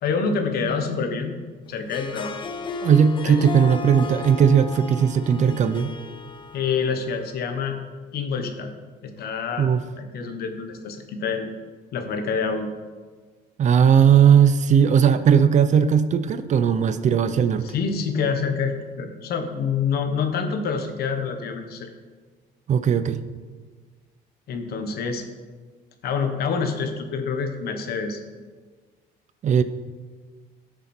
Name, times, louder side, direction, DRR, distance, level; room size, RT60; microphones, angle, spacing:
voice 1, 0.0-1.3 1.7-2.4 3.2-3.4 6.5-7.8 8.1-8.7 9.0-9.7 10.0-11.5 11.9-12.7 17.6-21.9 24.5-25.2 26.0-28.2, left 5 dB, 65° left, 6 dB, 1.4 m, -27 dB
Harp, 1.8-7.2, left 4 dB, 30° left, 0.8 m, -35 dB
voice 2, 2.8-5.9 9.6-9.8 13.6-17.6 22.7-23.2 29.4-29.6, right 7 dB, 45° right, 12 dB, 0.6 m, -18 dB
12.5 x 6.8 x 4.5 m, 1.4 s
cardioid pair, 110°, 17 cm